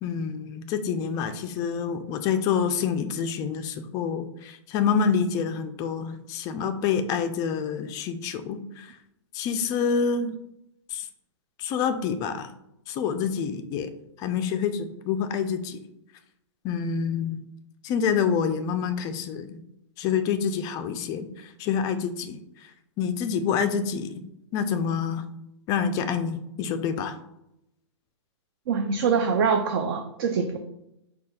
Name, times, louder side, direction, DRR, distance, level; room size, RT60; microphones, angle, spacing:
voice 1, 0.0-8.9 9.3-10.4 10.9-11.1 11.6-12.5 12.9-13.9 14.2-15.8 16.6-17.4 17.8-19.6 20.0-22.4 23.0-24.1 24.5-25.2 25.7-27.2, left 6 dB, 25° left, 8 dB, 0.3 m, -27 dB
voice 2, 28.7-30.6, right 5 dB, 50° right, 6 dB, 0.4 m, -24 dB
4.7 x 2.3 x 4.2 m, 0.83 s
hypercardioid pair, 140°, 16 cm